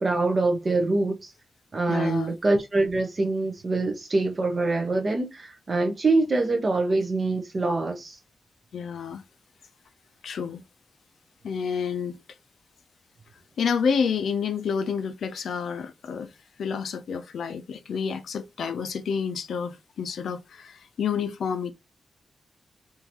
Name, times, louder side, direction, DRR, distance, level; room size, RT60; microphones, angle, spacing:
voice 1, 0.0-1.3 1.7-8.2, right 2 dB, 35° right, 0.7 m, -24 dB
voice 2, 1.9-2.3 8.7-9.2 10.2-10.6 11.4-12.2 13.6-16.3 16.6-21.7, left 6 dB, 90° left, 0.5 m, -29 dB
3.7 x 2.6 x 2.9 m
wide cardioid pair, 175°, 0 cm